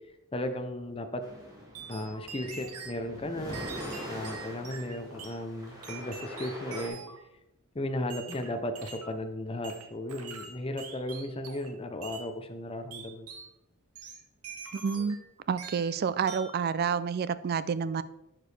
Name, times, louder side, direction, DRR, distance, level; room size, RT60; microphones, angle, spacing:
voice 1, 0.3-1.2 1.9-3.6 4.1-7.0 7.7-13.3, left 1 dB, 25° left, 6 dB, 0.6 m, -35 dB
sound 1, 1.2-6.9, equal, 15° right, 1.6 m, -43 dB
sound 2, 1.7-3.0 3.5-5.4 5.8-7.2 8.1-9.2 9.6-11.7 12.0-12.3 12.9-13.5 14.0-15.3 15.6-16.0 16.3-16.6, right 5 dB, 85° right, 1.0 m, -44 dB
voice 2, 14.7-15.2 15.5-18.0, right 6 dB, 45° right, 15 dB, 0.3 m, -29 dB
10.5 x 4.9 x 3.3 m, 0.91 s
head